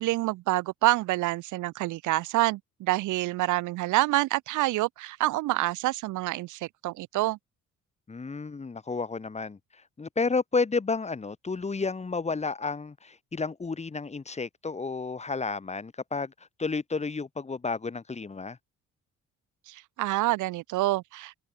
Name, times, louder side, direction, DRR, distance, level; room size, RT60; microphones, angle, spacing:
voice 1, 0.0-7.4 19.7-21.4, right 18 dB, 80° right, 0.5 m, -27 dB
voice 2, 8.1-16.3 16.6-18.6, left 4 dB, 20° left, 1.1 m, -31 dB
cardioid pair, 90°, 30 cm